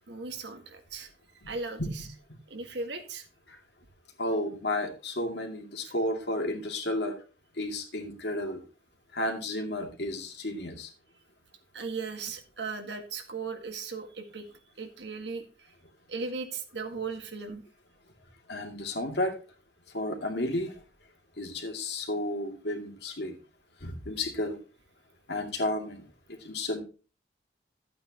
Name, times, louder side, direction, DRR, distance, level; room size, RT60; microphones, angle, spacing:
voice 1, 0.1-1.1 1.4-2.1 2.5-3.3 5.8-5.9 11.7-15.7 16.1-17.6, right 4 dB, 70° right, 6 dB, 1.8 m, -37 dB
voice 2, 4.2-7.2 7.6-8.6 9.1-10.9 18.5-19.4 19.9-20.7 21.4-23.4 23.8-24.6 25.3-26.0 26.4-26.8, left 1 dB, 65° left, 3 dB, 2.3 m, -32 dB
12.5 x 8.6 x 2.9 m, 0.34 s
head